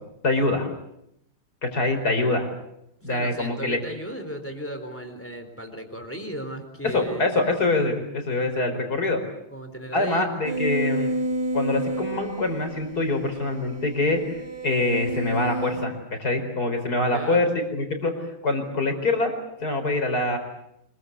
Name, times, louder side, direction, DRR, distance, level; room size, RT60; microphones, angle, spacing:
voice 1, 0.2-0.7 1.6-2.5 3.0-3.8 6.8-9.2 9.9-11.1 11.5-14.2 14.6-18.1 18.4-19.3 19.6-20.4, left 2 dB, 45° left, 6 dB, 5.1 m, -24 dB
voice 2, 3.0-7.4 9.5-11.0 17.1-17.5, right 1 dB, 5° left, 6 dB, 3.9 m, -36 dB
sound 1, 10.4-15.9, right 1 dB, 50° right, 3.2 m, -30 dB
25.5 x 23.0 x 8.3 m, 0.78 s
omnidirectional pair, 2.4 m